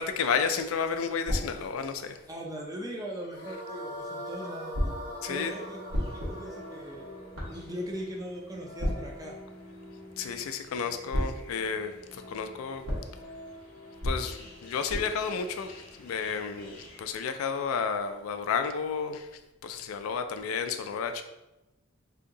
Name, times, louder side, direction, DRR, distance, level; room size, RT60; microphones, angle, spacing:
voice 1, 0.0-2.2 5.2-5.5 10.2-12.9 14.0-19.3 19.6-21.2, left 6 dB, 75° left, 8 dB, 0.3 m, -32 dB
sound 1, 1.2-3.2 4.7-10.8 11.1-16.6, equal, 75° right, 1.2 m, -37 dB
voice 2, 2.3-4.9 5.3-5.8 6.1-7.1 7.5-9.3, equal, 15° right, 0 dB, 0.3 m, -39 dB
sound 2, 3.3-8.5, equal, 40° right, 0.7 m, -41 dB
sound 3, 5.4-17.1, left 1 dB, 45° left, 0.7 m, -49 dB
2.8 x 2.6 x 3.7 m, 0.97 s
head